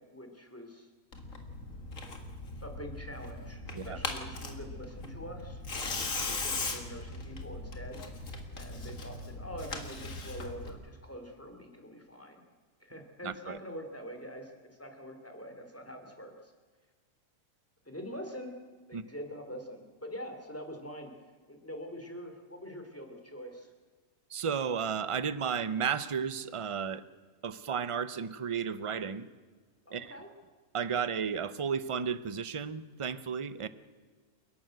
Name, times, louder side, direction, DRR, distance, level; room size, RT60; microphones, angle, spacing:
voice 1, 0.1-0.9 2.6-8.0 8.5-12.4 12.8-14.5 14.8-16.5 17.8-18.5 18.9-21.1 21.5-23.7 29.9-30.3, equal, 10° left, 4 dB, 3.1 m, -44 dB
Tearing, 1.1-10.7, left 3 dB, 55° left, 2.4 m, -39 dB
voice 2, 13.2-13.6 18.9-19.0 24.3-27.0 27.4-29.3 29.9-30.2 30.7-33.7, right 7 dB, 40° right, 14 dB, 0.5 m, -33 dB
29.0 x 11.5 x 7.8 m, 1.5 s
omnidirectional pair, 1.6 m